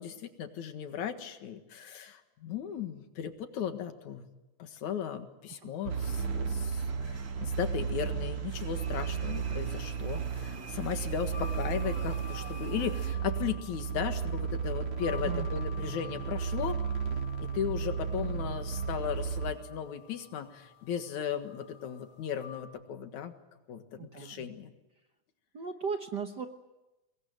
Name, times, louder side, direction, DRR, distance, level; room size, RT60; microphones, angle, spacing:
voice 1, 0.0-4.3 4.6-16.8 17.1-23.3 23.7-24.7, left 8 dB, 80° left, 8 dB, 3.0 m, -36 dB
sound 1, 5.9-13.2, right 5 dB, 35° right, 1.8 m, -49 dB
sound 2, 5.9-19.5, right 6 dB, 70° right, 3.0 m, -34 dB
sound 3, 8.7-22.6, left 10 dB, 60° left, 4.6 m, -51 dB
voice 2, 15.2-15.9 24.0-24.5 25.5-26.5, right 6 dB, 55° right, 5 dB, 1.2 m, -37 dB
24.5 x 20.5 x 9.3 m, 1.0 s
omnidirectional pair, 3.3 m